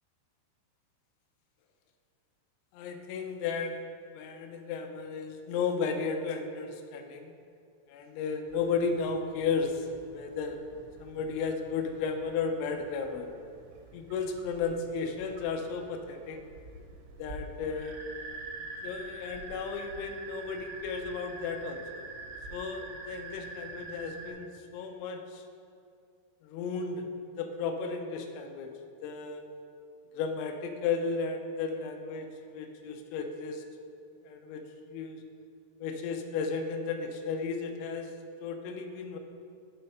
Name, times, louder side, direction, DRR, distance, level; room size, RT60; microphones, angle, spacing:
voice 1, 2.7-3.8 4.1-7.3 7.9-9.9 10.1-10.6 11.0-13.3 13.9-16.4 17.2-18.0 18.8-22.1 22.5-25.4 26.4-27.1 27.4-28.7 29.0-29.4 30.1-33.6 34.3-35.2 35.8-38.1 38.4-39.2, left 5 dB, 80° left, 4 dB, 2.8 m, -34 dB
sound 1, 8.5-24.3, right 3 dB, 80° right, 3.0 m, -46 dB
6.2 x 5.3 x 5.6 m, 2.4 s
omnidirectional pair, 5.6 m